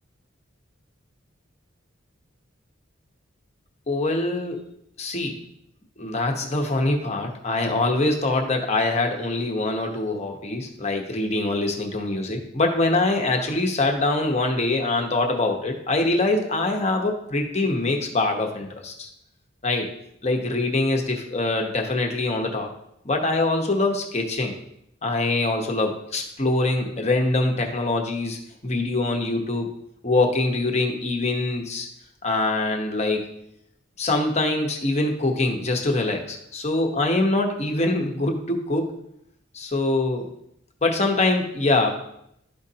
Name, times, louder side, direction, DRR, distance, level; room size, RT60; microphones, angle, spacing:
voice 1, 3.9-4.6 5.0-5.3 6.0-19.1 19.6-19.9 20.2-22.7 23.0-24.5 25.0-28.4 28.6-29.7 30.0-31.9 32.2-33.2 34.0-38.9 39.5-40.3 40.8-41.9, left 2 dB, 35° left, 3 dB, 1.0 m, -24 dB
12.0 x 5.1 x 2.8 m, 0.75 s
head